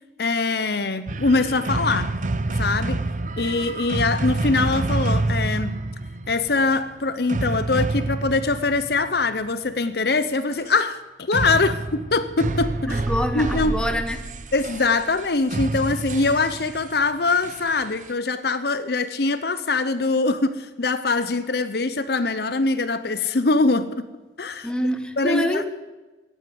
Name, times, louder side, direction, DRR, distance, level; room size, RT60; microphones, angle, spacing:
voice 1, 0.2-2.1 2.5-3.0 3.4-5.8 6.3-13.0 13.3-13.8 14.5-24.1 24.4-24.7 25.2-25.7, left 3 dB, 55° left, 12 dB, 0.7 m, -23 dB
sound 1, 1.1-9.5 11.3-18.1, right 2 dB, 40° right, 0.7 m, -28 dB
voice 2, 12.9-14.2 24.6-25.7, equal, 5° left, 7 dB, 1.1 m, -26 dB
17.0 x 10.0 x 7.7 m, 1.2 s
head